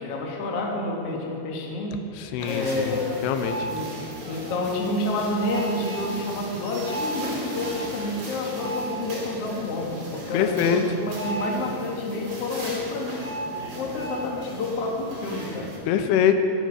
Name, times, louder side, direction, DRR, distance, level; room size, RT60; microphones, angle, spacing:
voice 1, 0.0-2.0 2.4-3.2 3.7-4.0 4.3-13.2 13.7-15.8, left 2 dB, 55° left, -1 dB, 1.9 m, -29 dB
voice 2, 2.2-3.0 3.2-3.7 10.3-10.8 15.9-16.3, left 8 dB, 90° left, 8 dB, 2.7 m, -23 dB
sound 1, 2.4-15.8, right 2 dB, 45° right, 3.7 m, -35 dB
15.5 x 9.1 x 5.0 m, 2.7 s
omnidirectional pair, 4.6 m